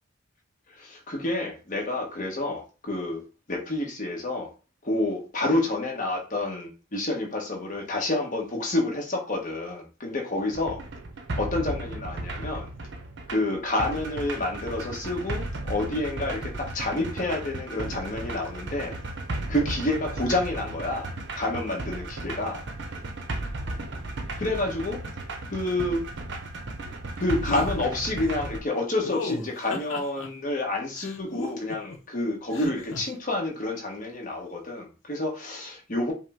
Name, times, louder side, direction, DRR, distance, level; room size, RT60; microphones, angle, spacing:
voice 1, 0.8-3.2 3.5-4.5 4.8-10.8 11.4-12.7 13.3-19.0 19.5-21.1 21.3-22.6 24.4-25.0 25.5-26.0 27.2-36.1, left 2 dB, 40° left, 1.1 m, -29 dB
sound 1, 10.5-28.6, right 2 dB, 60° right, 0.7 m, -35 dB
sound 2, 27.5-27.7 29.0-30.3 31.0-32.0 32.5-33.0, left 4 dB, 80° left, 0.8 m, -34 dB
5.4 x 2.1 x 3.5 m
head